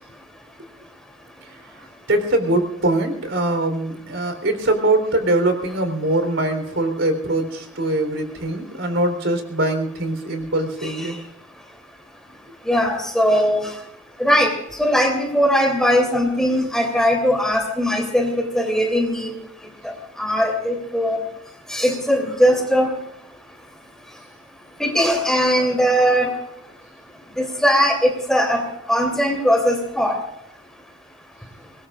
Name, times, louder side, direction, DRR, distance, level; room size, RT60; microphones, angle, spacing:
voice 1, 2.1-11.1, right 1 dB, 80° right, 6 dB, 3.7 m, -22 dB
voice 2, 12.7-13.6 14.2-14.5 14.8-19.3 19.8-19.9 20.2-21.2 21.7-22.9 24.8-26.3 27.4-28.6 28.9-30.2, equal, 5° left, 2 dB, 3.0 m, -19 dB
24.5 x 20.5 x 2.5 m, 0.79 s
head